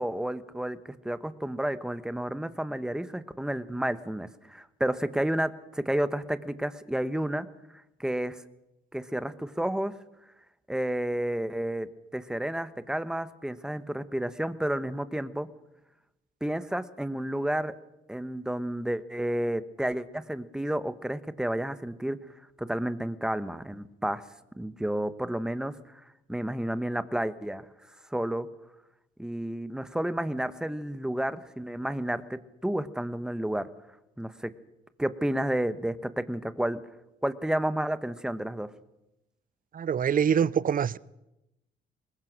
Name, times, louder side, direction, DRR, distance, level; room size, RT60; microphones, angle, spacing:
voice 1, 0.0-7.5 8.0-8.4 8.9-9.9 10.7-15.5 16.4-17.7 18.1-22.2 22.6-24.2 24.6-25.7 26.3-27.6 28.1-28.5 29.2-33.7 34.2-34.5 35.0-36.8 37.2-38.7, right 1 dB, 5° right, 1.2 m, -31 dB
voice 2, 39.7-41.0, right 8 dB, 45° right, 0.7 m, -24 dB
22.5 x 20.0 x 6.3 m
cardioid pair, 90°, 20 cm